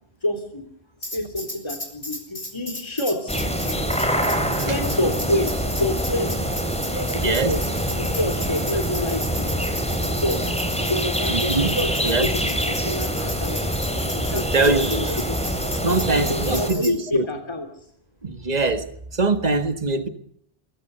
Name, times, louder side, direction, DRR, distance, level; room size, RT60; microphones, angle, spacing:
voice 1, 0.2-0.6 1.0-3.4 4.6-6.3 6.9-7.6 7.9-9.5 10.0-10.4 10.9-12.4 12.7-13.6 14.1-15.4 16.1-17.7, left 1 dB, 25° left, 3.1 m, -27 dB
Tambourine, 1.0-17.0, left 1 dB, 60° left, 5.6 m, -35 dB
sound 1, 3.3-16.7, equal, 5° left, 4.3 m, -25 dB
voice 2, 7.2-7.5 11.3-11.7 12.0-12.3 14.2-15.3 15.8-17.3 18.2-18.9 19.1-20.1, right 3 dB, 40° right, 1.9 m, -23 dB
24.5 x 23.0 x 6.9 m
omnidirectional pair, 1.1 m